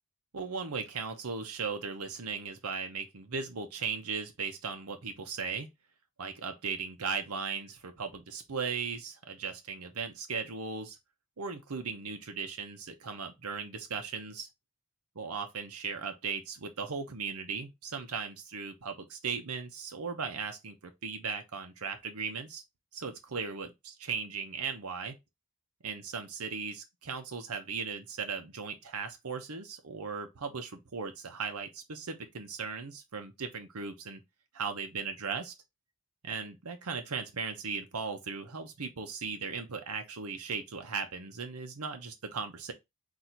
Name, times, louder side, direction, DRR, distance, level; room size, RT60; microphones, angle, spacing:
voice 1, 0.3-5.7 6.2-11.0 11.4-14.5 15.1-22.6 22.9-25.2 25.8-34.2 34.5-35.5 36.2-42.7, right 5 dB, 85° right, 0.8 m, -37 dB
4.1 x 2.7 x 4.4 m
head